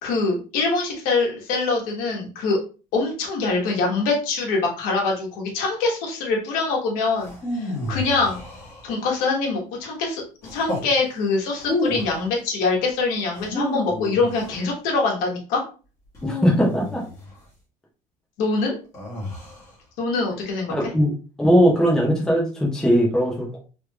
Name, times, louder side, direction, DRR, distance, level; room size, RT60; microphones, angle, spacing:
voice 1, 0.0-2.6 2.9-8.4 8.8-15.6 18.4-18.8 20.0-20.9, left 3 dB, 75° left, 0 dB, 1.3 m, -24 dB
sound 1, 7.2-9.2 10.4-10.9 11.6-12.3 13.3-14.7 16.1-17.4 18.9-19.7, left 2 dB, 25° left, 1.4 m, -31 dB
voice 2, 16.2-17.0 20.7-21.1 21.4-23.6, equal, 5° left, -4 dB, 0.8 m, -19 dB
3.4 x 3.0 x 2.3 m, 0.35 s
cardioid pair, 165°, 15 cm